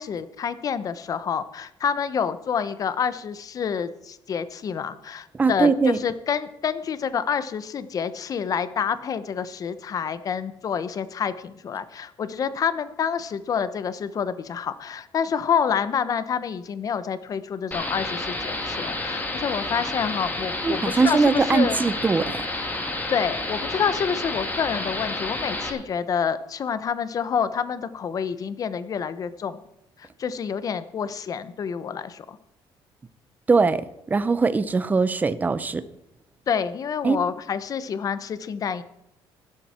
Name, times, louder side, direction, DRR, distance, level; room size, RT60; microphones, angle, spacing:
voice 1, 0.0-21.8 22.5-22.7 23.1-29.6 30.0-32.4 36.5-38.8, left 7 dB, 40° left, 14 dB, 1.0 m, -28 dB
voice 2, 5.4-6.0 20.6-22.4 33.5-35.8 37.0-37.2, right 4 dB, 20° right, 14 dB, 0.7 m, -21 dB
sound 1, 17.7-25.7, left 2 dB, 20° left, 2.7 m, -30 dB
16.0 x 12.0 x 4.4 m, 0.85 s
cardioid pair, 145°, 9 cm